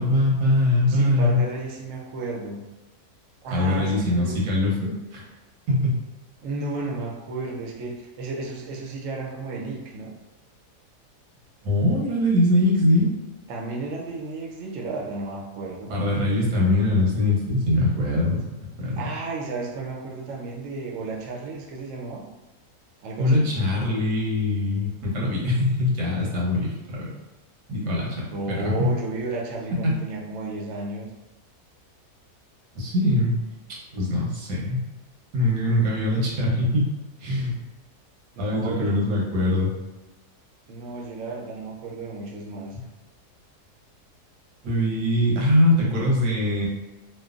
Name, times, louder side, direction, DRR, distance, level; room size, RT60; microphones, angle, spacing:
voice 1, 0.0-1.4 3.5-5.3 5.7-5.9 11.6-13.1 15.9-18.4 18.8-19.0 23.2-27.1 27.7-28.9 29.8-29.9 32.7-33.4 33.7-34.8 35.3-36.9 37.2-37.5 38.4-39.7 44.6-46.7, left 1 dB, 90° right, -3 dB, 1.4 m, -22 dB
voice 2, 0.9-2.6 3.4-4.4 6.4-10.1 13.5-15.9 19.0-22.2 23.0-23.5 28.3-31.1 38.4-39.0 40.7-42.8, right 3 dB, 65° right, -1 dB, 0.8 m, -33 dB
3.1 x 2.2 x 2.4 m, 1.1 s
omnidirectional pair, 1.7 m